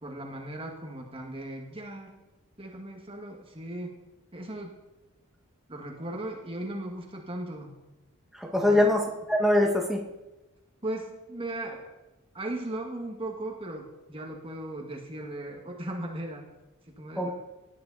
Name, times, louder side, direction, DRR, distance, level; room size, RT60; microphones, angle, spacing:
voice 1, 0.0-2.1 2.6-4.0 4.3-4.8 5.7-7.8 8.5-8.8 10.8-11.9 12.3-16.5 16.9-17.3, right 1 dB, 25° right, 1 dB, 1.9 m, -37 dB
voice 2, 8.3-10.0 17.2-17.3, left 1 dB, ahead, 0 dB, 1.9 m, -23 dB
18.5 x 11.5 x 4.2 m, 1.0 s
head